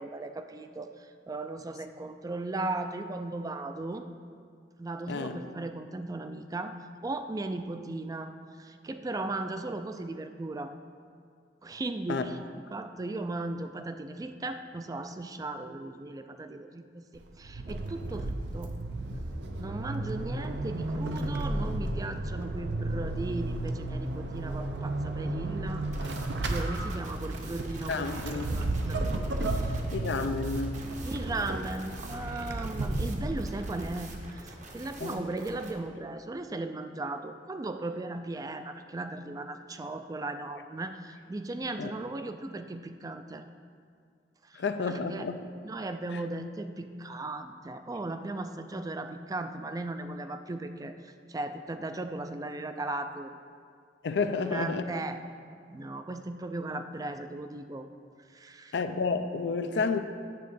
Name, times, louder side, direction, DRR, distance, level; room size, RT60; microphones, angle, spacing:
voice 1, 0.0-4.0 4.8-10.7 11.6-18.8 19.6-25.8 26.3-28.2 28.5-29.1 29.4-29.8 31.0-43.4 44.4-45.3 45.6-53.3 54.2-55.2 55.7-57.9 58.3-58.7 59.7-60.0, right 2 dB, 20° right, 8 dB, 0.3 m, -37 dB
voice 2, 5.1-5.4 12.1-12.2 26.0-26.1 27.9-28.5 29.9-30.8 35.0-35.2 41.8-41.9 44.5-45.4 46.1-46.2 54.0-54.8 58.7-60.0, left 4 dB, 75° left, 9 dB, 0.4 m, -30 dB
Vehicle / Accelerating revving vroom / Squeak, 17.1-34.4, right 2 dB, 70° right, 0.6 m, -33 dB
sound 1, 25.9-35.7, right 2 dB, 45° right, 0.9 m, -48 dB
8.4 x 3.7 x 6.8 m, 2.2 s
head